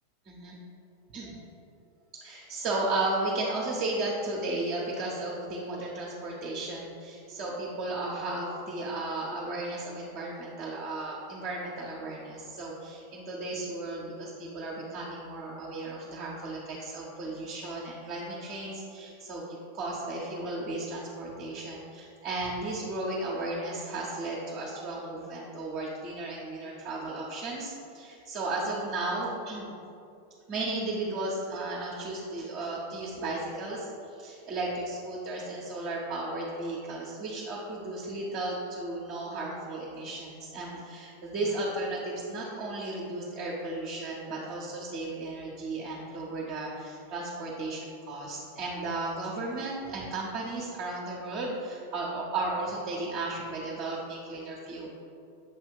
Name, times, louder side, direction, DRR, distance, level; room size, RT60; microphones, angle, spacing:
voice 1, 0.2-0.6 1.1-1.4 2.2-29.7 30.5-54.9, right 2 dB, 35° right, -6 dB, 1.0 m, -34 dB
7.2 x 2.7 x 5.3 m, 2.6 s
figure-of-eight pair, 90°, 0 cm